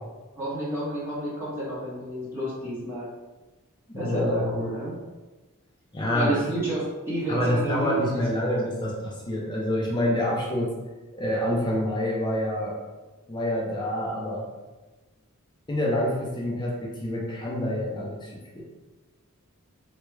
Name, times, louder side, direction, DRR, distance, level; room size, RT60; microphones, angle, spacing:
voice 1, 0.4-3.1 3.9-4.9 6.1-8.2, right 1 dB, 10° right, -10 dB, 1.0 m, -30 dB
voice 2, 3.9-4.7 5.9-6.4 7.3-10.7 11.1-12.8 13.3-14.5 15.7-18.6, left 1 dB, 20° left, -3 dB, 0.5 m, -27 dB
3.4 x 2.2 x 3.1 m, 1.2 s
head